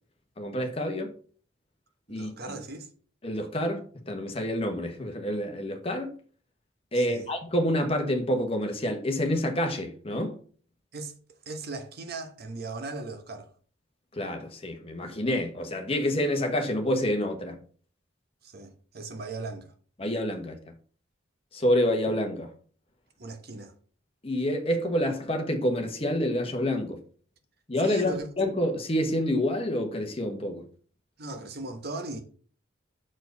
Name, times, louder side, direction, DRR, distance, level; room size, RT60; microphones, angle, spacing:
voice 1, 0.4-1.1 2.1-2.3 3.2-6.1 6.9-10.4 14.1-17.6 20.0-20.6 21.5-22.5 24.2-27.0 27.7-30.7, left 1 dB, 30° left, 1.2 m, -28 dB
voice 2, 2.1-2.9 6.9-7.3 10.9-11.1 11.4-13.5 18.4-19.7 23.2-23.7 27.8-28.3 31.2-32.2, right 3 dB, 50° right, 1.1 m, -38 dB
6.3 x 4.7 x 5.3 m
head